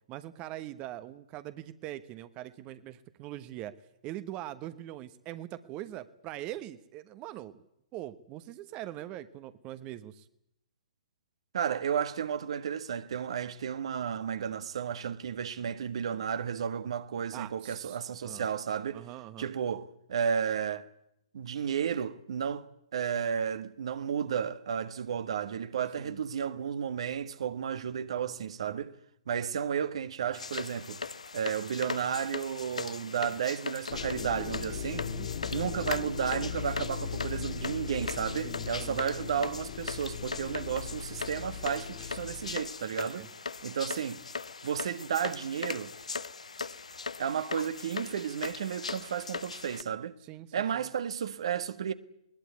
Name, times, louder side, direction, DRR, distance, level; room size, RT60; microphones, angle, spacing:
voice 1, 0.1-3.7 4.0-7.6 7.9-10.3 17.3-18.5 18.9-19.5 26.0-26.2 34.9-35.3 38.4-39.0 43.0-43.3 50.2-50.9, right 14 dB, 25° right, 1.1 m, -42 dB
voice 2, 11.5-19.0 19.4-20.9 21.3-22.7 22.9-28.9 29.3-31.0 31.3-35.1 35.5-43.3 43.6-44.2 44.6-45.9 47.2-50.2 50.5-51.9, right 8 dB, 55° right, 1.4 m, -33 dB
sound 1, 30.3-49.8, left 4 dB, 70° left, 1.0 m, -39 dB
sound 2, 33.9-42.6, left 7 dB, 50° left, 2.2 m, -38 dB
21.0 x 20.0 x 9.5 m
figure-of-eight pair, 120°, 4 cm